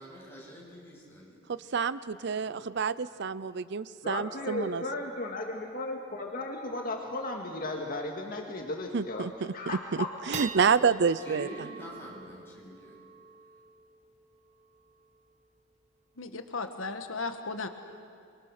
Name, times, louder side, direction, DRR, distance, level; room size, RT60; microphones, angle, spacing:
voice 1, 0.0-1.4 2.5-2.6 11.2-12.9, equal, 10° left, -4 dB, 7.9 m, -46 dB
voice 2, 1.5-4.8 8.9-9.5 10.3-11.5, right 6 dB, 60° right, 16 dB, 0.5 m, -28 dB
voice 3, 4.0-10.1, left 2 dB, 45° left, 1 dB, 2.0 m, -35 dB
sound 1, 6.8-6.9 7.2-7.3 7.7-7.9 8.4-8.5 9.0-9.4 9.8-16.4, right 4 dB, 35° right, 1.4 m, -46 dB
voice 4, 16.2-17.7, left 3 dB, 90° left, 7 dB, 1.4 m, -35 dB
29.5 x 23.5 x 6.6 m, 2.4 s
head